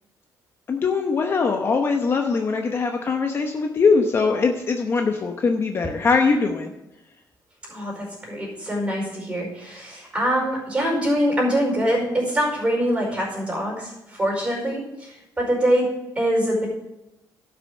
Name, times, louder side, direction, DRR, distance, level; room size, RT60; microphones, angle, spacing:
voice 1, 0.7-6.7, left 4 dB, 35° left, 4 dB, 0.9 m, -21 dB
voice 2, 7.7-16.7, equal, 15° right, -2 dB, 5.0 m, -24 dB
11.5 x 6.3 x 6.5 m, 0.95 s
cardioid pair, 135°, 7 cm